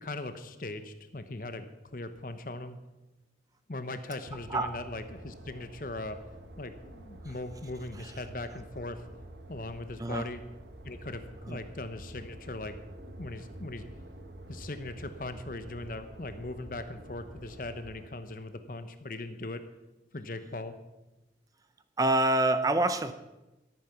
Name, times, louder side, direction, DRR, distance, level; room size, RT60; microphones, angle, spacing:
voice 1, 0.0-2.8 3.7-6.2 6.6-9.0 9.5-10.4 10.8-13.9 14.5-19.6 20.1-20.7, left 2 dB, 50° left, 9 dB, 1.0 m, -39 dB
sound 1, 4.3-18.1, right 1 dB, 85° right, 1.3 m, -48 dB
voice 2, 22.0-23.1, right 2 dB, 20° right, 10 dB, 0.5 m, -26 dB
14.0 x 9.0 x 5.9 m, 1.0 s
head